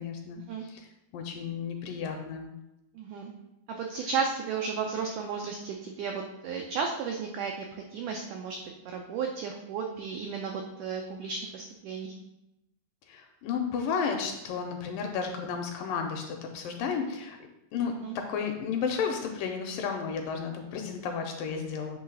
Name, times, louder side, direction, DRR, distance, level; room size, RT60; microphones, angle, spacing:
voice 1, 0.0-2.5 13.1-17.4 17.7-22.0, left 6 dB, 80° left, 4 dB, 2.1 m, -33 dB
voice 2, 3.0-3.3 3.7-8.6 8.9-12.1 18.0-18.1, right 5 dB, 85° right, 2 dB, 1.7 m, -34 dB
8.7 x 3.1 x 5.4 m, 0.91 s
omnidirectional pair, 4.3 m